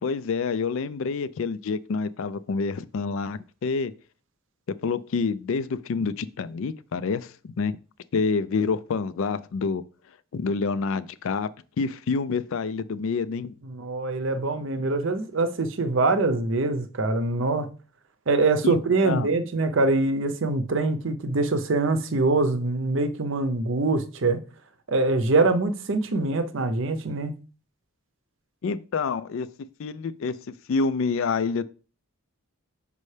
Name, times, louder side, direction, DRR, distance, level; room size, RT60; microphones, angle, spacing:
voice 1, 0.0-3.9 4.7-7.8 8.1-9.8 10.3-11.5 11.8-13.5 18.6-19.3 28.6-31.6, left 4 dB, 65° left, 0.4 m, -28 dB
voice 2, 13.7-17.7 18.3-24.4 24.9-27.3, right 3 dB, 60° right, 0.6 m, -24 dB
5.4 x 5.2 x 3.3 m
head